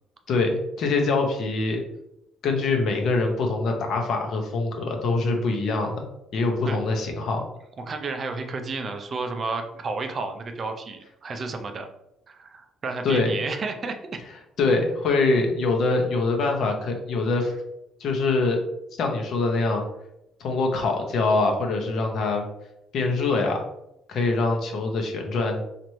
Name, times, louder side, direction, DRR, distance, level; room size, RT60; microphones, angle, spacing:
voice 1, 0.3-1.8 2.4-6.1 6.3-7.4 13.0-13.4 14.6-17.6 18.0-18.6 19.0-19.8 20.4-22.4 22.9-23.6 24.1-25.6, left 3 dB, 55° left, 3 dB, 0.7 m, -24 dB
voice 2, 7.8-11.9 12.3-14.2, right 3 dB, 35° right, 6 dB, 0.4 m, -32 dB
3.0 x 2.5 x 4.2 m, 0.83 s
cardioid pair, 145°, 0 cm